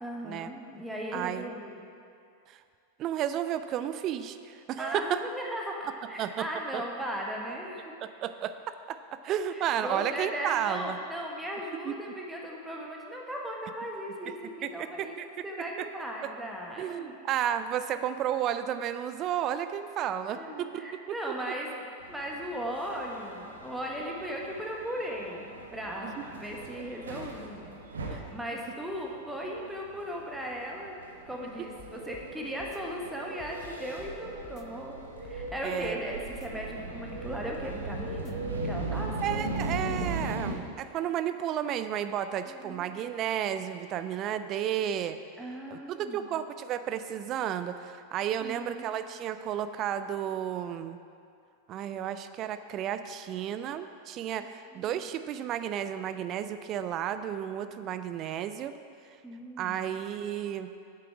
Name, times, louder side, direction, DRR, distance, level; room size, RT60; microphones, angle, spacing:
voice 1, 0.0-1.8 4.8-7.9 9.5-15.2 15.4-17.1 20.3-31.0 31.3-39.4 42.5-42.9 45.4-46.2 48.4-48.9 54.4-55.0 59.2-59.8, equal, 5° right, -1 dB, 1.3 m, -37 dB
voice 2, 1.1-1.5 2.5-2.6 3.0-5.2 6.2-6.5 6.7-6.8 8.0-9.0 9.2-11.0 11.8-11.9 14.6-15.3 15.8-15.9 16.8-20.8 21.3-21.4 26.0-26.2 28.1-28.2 35.6-36.0 39.2-45.2 45.7-51.0 51.7-58.7 59.6-60.7, right 10 dB, 35° right, 11 dB, 0.4 m, -32 dB
sound 1, 22.0-40.5, right 2 dB, 70° right, 1.0 m, -39 dB
sound 2, 31.8-32.3 32.6-32.8 33.4-34.1 34.4-34.6 35.2-36.0 36.3-36.5 37.1-37.8 38.1-38.3 38.9-39.1, left 9 dB, 30° left, 0.5 m, -51 dB
8.5 x 7.6 x 4.7 m, 2.4 s
figure-of-eight pair, 90°, 0 cm